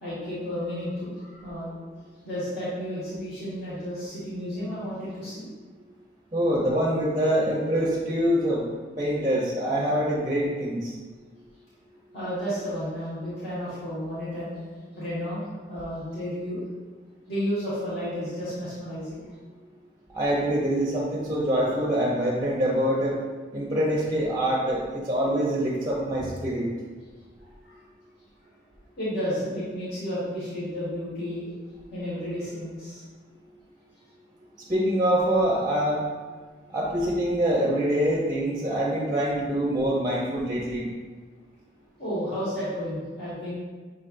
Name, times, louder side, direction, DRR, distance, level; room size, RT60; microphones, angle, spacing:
voice 1, 0.0-1.8 2.2-5.5 12.1-14.6 14.9-16.7 17.3-19.2 27.4-27.8 29.0-31.5 31.9-33.0 42.0-43.5, equal, 60° left, -11 dB, 1.5 m, -32 dB
voice 2, 6.3-8.6 9.0-10.9 20.1-23.1 23.5-26.6 34.7-36.0 36.7-40.9, equal, 20° right, -4 dB, 0.6 m, -25 dB
6.2 x 3.2 x 2.5 m, 1.4 s
head